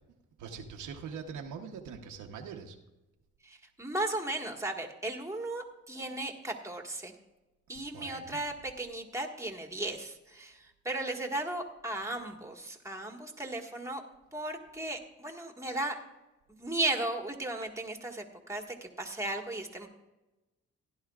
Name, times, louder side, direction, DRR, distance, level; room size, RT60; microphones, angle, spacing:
voice 1, 0.4-2.8 6.1-6.2 7.7-8.4, right 6 dB, 80° right, 3 dB, 1.1 m, -43 dB
voice 2, 3.4-7.1 7.7-14.0 14.3-16.0 16.6-19.9, right 2 dB, 10° right, 3 dB, 1.6 m, -36 dB
16.0 x 11.0 x 2.4 m, 1.0 s
cardioid pair, 90°, 30 cm